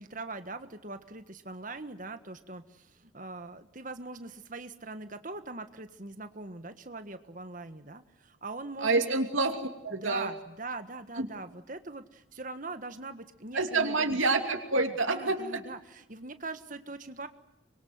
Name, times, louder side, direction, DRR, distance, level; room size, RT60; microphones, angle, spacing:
voice 1, 0.0-9.2 9.9-14.2 15.1-17.3, right 3 dB, 40° right, 9 dB, 1.5 m, -42 dB
voice 2, 8.8-9.6 9.8-10.3 11.2-11.3 13.5-15.6, right 3 dB, 80° right, 5 dB, 2.8 m, -27 dB
26.0 x 22.5 x 9.5 m, 0.82 s
head